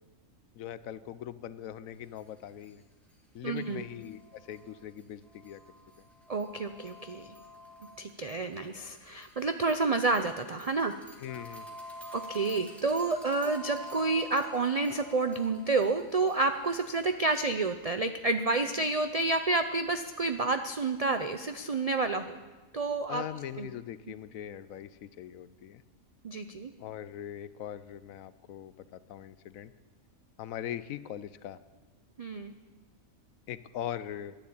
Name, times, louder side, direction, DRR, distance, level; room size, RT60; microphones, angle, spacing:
voice 1, 0.5-2.8 3.3-5.6 6.0-6.1 11.2-11.7 23.1-25.8 26.8-29.7 30.4-31.6 33.5-34.4, left 10 dB, 75° left, 15 dB, 1.0 m, -41 dB
sound 1, 2.2-2.3 2.6-2.7 3.1-3.2 3.5-17.4, equal, ahead, 1.8 m, -49 dB
voice 2, 3.4-3.8 6.3-7.4 8.0-11.0 12.1-22.4 22.7-23.2 23.6-23.7 26.2-26.7 32.2-32.5, right 3 dB, 70° right, 8 dB, 0.3 m, -29 dB
12.0 x 10.0 x 8.7 m, 1.3 s
omnidirectional pair, 1.5 m